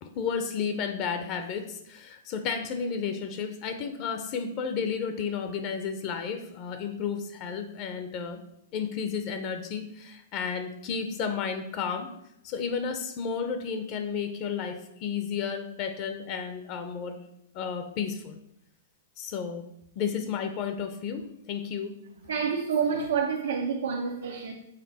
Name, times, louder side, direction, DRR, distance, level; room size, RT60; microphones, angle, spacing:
voice 1, 0.0-8.4 8.7-12.1 12.4-17.2 17.5-18.4 19.2-19.6 20.0-22.0, left 6 dB, 40° left, 0.6 m, -32 dB
voice 2, 22.2-24.5, right 6 dB, 90° right, 0.7 m, -28 dB
6.6 x 4.2 x 4.0 m
hypercardioid pair, 145°, 0 cm